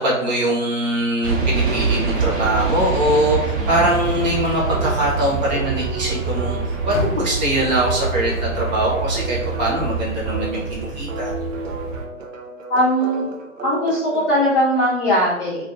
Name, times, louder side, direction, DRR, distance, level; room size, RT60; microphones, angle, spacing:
voice 1, 0.0-6.6 6.8-11.3, right 1 dB, 35° right, -4 dB, 1.0 m, -22 dB
sound 1, 1.2-12.0, right 4 dB, 55° right, 0.9 m, -25 dB
sound 2, 1.7-14.4, right 2 dB, 75° right, 0.7 m, -34 dB
Car, 6.9-10.2 10.6-11.9 12.4-12.5 13.1-13.2, left 1 dB, 90° left, 0.7 m, -34 dB
voice 2, 12.7-13.2 13.6-15.6, equal, 15° left, -9 dB, 0.7 m, -19 dB
2.5 x 2.5 x 2.7 m, 0.81 s
figure-of-eight pair, 135°, 39 cm